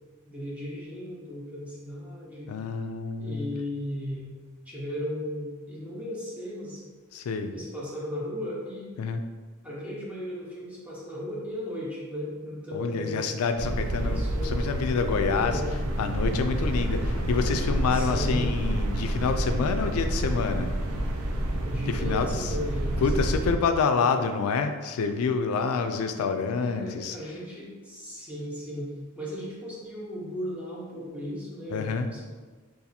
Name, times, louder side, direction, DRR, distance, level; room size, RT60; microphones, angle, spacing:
voice 1, 0.3-2.5 3.2-4.3 4.7-6.8 7.5-8.9 9.6-13.2 14.0-14.5 15.3-15.7 17.9-18.5 21.6-23.6 26.6-32.2, equal, 5° right, -6 dB, 0.8 m, -36 dB
voice 2, 2.5-3.5 7.1-7.5 9.0-9.2 12.7-15.6 16.0-20.7 21.9-22.6 23.0-27.2 31.7-32.1, left 5 dB, 80° left, 7 dB, 0.3 m, -27 dB
sound 1, 13.6-23.5, right 1 dB, 75° right, 0.4 m, -28 dB
2.7 x 2.5 x 4.0 m, 1.4 s
head